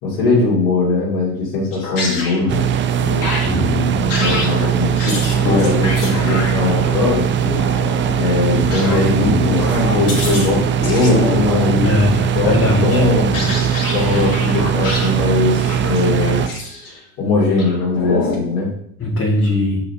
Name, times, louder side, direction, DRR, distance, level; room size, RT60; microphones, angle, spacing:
voice 1, 0.0-2.7 3.0-3.4 4.1-5.1 5.4-7.3 8.2-12.0 12.3-13.5 13.9-16.5 17.2-18.7, left 3 dB, 60° left, -6 dB, 2.4 m, -20 dB
sound 1, 1.7-2.5 3.2-12.2 12.8-15.2 15.5-17.0 17.6-18.3, left 2 dB, 45° left, 2.4 m, -26 dB
sound 2, 2.5-16.5, right 8 dB, 25° right, 0.5 m, -19 dB
voice 2, 11.8-13.0 19.0-19.8, left 1 dB, 25° left, -5 dB, 2.0 m, -19 dB
4.9 x 4.9 x 5.5 m, 0.67 s
figure-of-eight pair, 65°, 47 cm